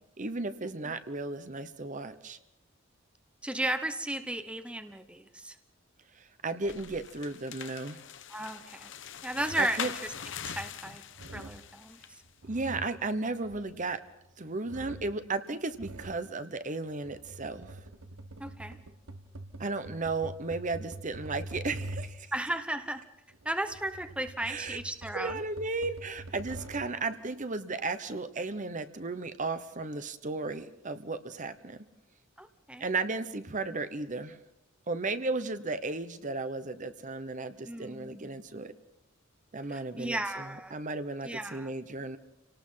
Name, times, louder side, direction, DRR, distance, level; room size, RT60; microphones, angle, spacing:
voice 1, 0.2-2.4 6.4-8.0 9.6-9.9 12.5-14.0 14.4-17.8 19.6-22.3 24.5-24.8 25.1-31.8 32.8-34.4 34.9-38.7 39.5-42.2, right 3 dB, 40° right, 11 dB, 1.0 m, -34 dB
voice 2, 3.4-5.6 8.3-8.9 9.2-10.1 10.4-11.0 11.3-12.0 18.4-18.8 22.3-23.0 23.4-25.4 32.4-32.8 37.6-38.3 39.7-40.7 41.2-41.7, right 1 dB, 5° right, 9 dB, 0.9 m, -35 dB
sound 1, 6.6-12.2, left 8 dB, 65° left, 1.0 m, -42 dB
sound 2, 9.3-9.8 10.3-10.8 11.1-11.7 12.2-14.3 14.6-15.2 15.7-16.3 16.9-22.3 23.3-27.0, right 1 dB, 85° right, 1.6 m, -45 dB
28.5 x 18.5 x 5.8 m, 0.88 s
head